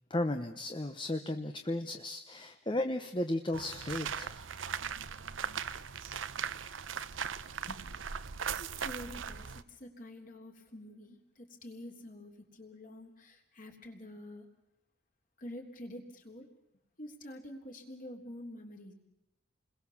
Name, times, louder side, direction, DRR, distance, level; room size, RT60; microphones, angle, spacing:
voice 1, 0.1-4.3, left 1 dB, 25° left, 7 dB, 0.9 m, -34 dB
sound 1, 3.5-9.6, right 7 dB, 70° right, 0.8 m, -39 dB
voice 2, 8.6-14.5 15.4-16.5 17.0-18.9, left 1 dB, 40° left, 3 dB, 3.5 m, -47 dB
29.5 x 21.5 x 7.2 m, 0.88 s
head